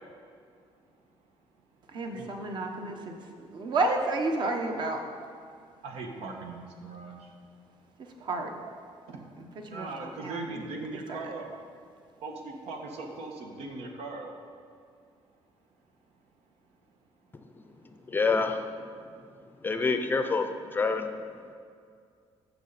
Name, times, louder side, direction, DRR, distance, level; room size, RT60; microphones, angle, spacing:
voice 1, 1.9-5.0 6.2-6.3 8.2-8.5 9.4-11.3, right 2 dB, 45° right, 3 dB, 1.1 m, -32 dB
voice 2, 5.8-7.2 9.1-9.2 9.7-11.5 12.2-14.3, right 3 dB, 85° right, 2 dB, 1.5 m, -39 dB
voice 3, 18.1-18.6 19.6-20.5 20.7-21.1, left 4 dB, 20° left, 7 dB, 0.5 m, -26 dB
14.5 x 6.9 x 4.2 m, 2.2 s
cardioid pair, 150°, 10 cm